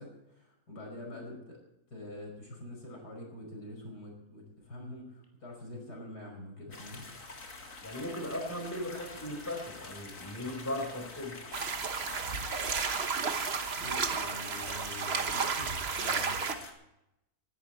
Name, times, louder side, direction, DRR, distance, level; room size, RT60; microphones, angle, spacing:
voice 1, 0.0-1.6 1.9-7.1 13.8-16.4, left 1 dB, 80° left, 0 dB, 5.7 m, -45 dB
sound 1, 6.7-16.7, left 3 dB, 55° left, 2.5 m, -47 dB
voice 2, 7.8-11.4, left 1 dB, 10° left, 2 dB, 4.2 m, -37 dB
sound 2, 11.5-16.5, right 5 dB, 45° right, 1.2 m, -32 dB
19.5 x 11.5 x 4.4 m, 0.87 s
omnidirectional pair, 1.7 m